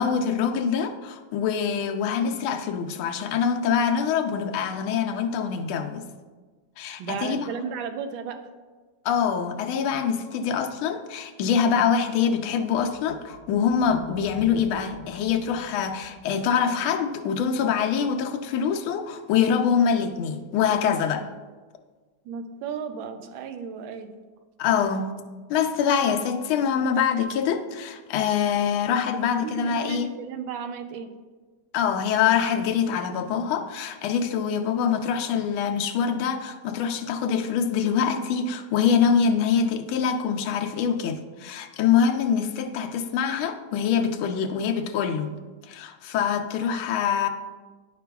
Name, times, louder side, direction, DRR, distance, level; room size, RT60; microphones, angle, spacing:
voice 1, 0.0-6.0 6.8-7.7 9.0-21.3 24.6-25.2 25.5-30.1 31.7-45.3 45.6-47.3, left 7 dB, 85° left, 5 dB, 1.4 m, -24 dB
voice 2, 7.0-8.5 22.2-24.2 29.1-31.2, right 6 dB, 80° right, 8 dB, 1.3 m, -34 dB
sound 1, 12.8-17.2, left 2 dB, 30° left, 1.9 m, -45 dB
10.0 x 5.8 x 2.3 m, 1.3 s
omnidirectional pair, 2.2 m